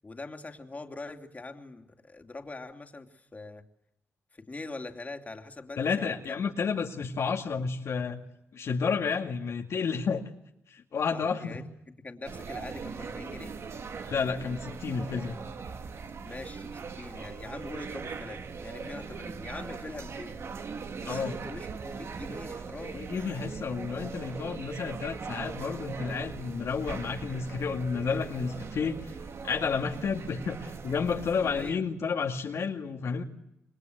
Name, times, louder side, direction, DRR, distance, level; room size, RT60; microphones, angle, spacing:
voice 1, 0.0-3.6 4.3-6.4 11.1-11.6 12.0-13.5 16.2-20.4 21.0-23.1 31.5-31.8, left 3 dB, 30° left, 5 dB, 2.9 m, -43 dB
voice 2, 5.8-8.2 8.5-10.2 10.7-11.6 14.1-15.4 21.0-21.4 22.9-29.1 29.4-33.2, left 5 dB, 70° left, 2 dB, 2.1 m, -31 dB
sound 1, 12.2-31.7, right 5 dB, 60° right, 2.0 m, -40 dB
27.5 x 21.5 x 8.0 m, 0.84 s
cardioid pair, 55°, 5 cm